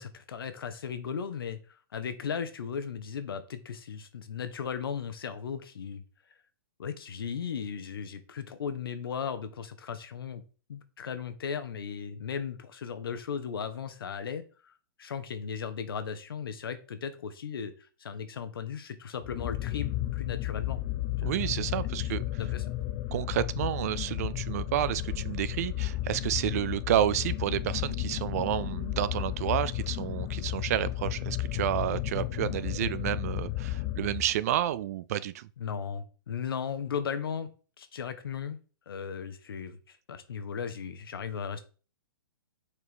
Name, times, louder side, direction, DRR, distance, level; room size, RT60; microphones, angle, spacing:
voice 1, 0.0-1.6 1.9-6.0 6.8-10.4 10.7-14.7 15.0-17.7 18.0-20.8 21.2-21.3 22.4-22.6 35.6-37.5 37.8-38.6 38.9-41.6, left 7 dB, 80° left, 1.1 m, -36 dB
sound 1, 19.2-34.6, left 15 dB, 30° left, 0.4 m, -33 dB
voice 2, 21.2-22.2 23.1-35.5, right 12 dB, 45° right, 0.4 m, -30 dB
6.7 x 4.5 x 3.5 m
hypercardioid pair, 150°, 12 cm